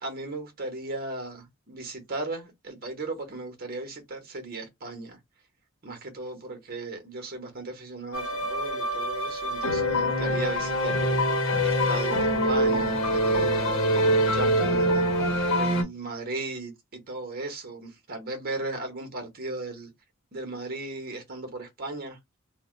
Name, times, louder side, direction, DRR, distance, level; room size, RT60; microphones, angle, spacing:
voice 1, 0.0-5.2 5.8-19.9 20.3-22.2, right 2 dB, 45° right, 1.0 m, -36 dB
sound 1, 8.1-15.8, equal, 65° left, 0.9 m, -24 dB
2.6 x 2.2 x 3.7 m
head